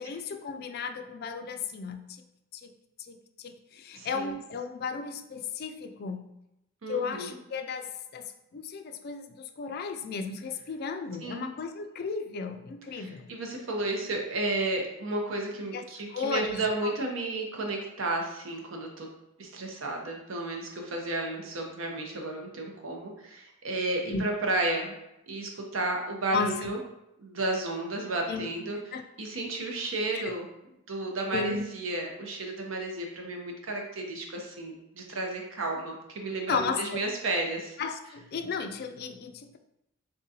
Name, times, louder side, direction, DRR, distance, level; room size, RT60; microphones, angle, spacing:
voice 1, 0.0-2.2 2.5-2.7 3.1-6.3 6.9-13.3 15.7-15.8 16.1-16.9 24.1-24.2 26.3-26.7 28.3-28.5 28.9-29.0 30.1-30.3 31.3-31.6 36.5-37.0 37.8-39.6, left 5 dB, 50° left, 7 dB, 0.3 m, -34 dB
voice 2, 3.9-4.3 6.8-7.3 11.2-11.5 12.9-19.1 19.4-25.0 25.3-26.8 27.2-28.8 29.2-30.5 30.9-37.8, right 2 dB, 70° right, 1 dB, 0.8 m, -32 dB
3.8 x 3.6 x 2.8 m, 0.87 s
head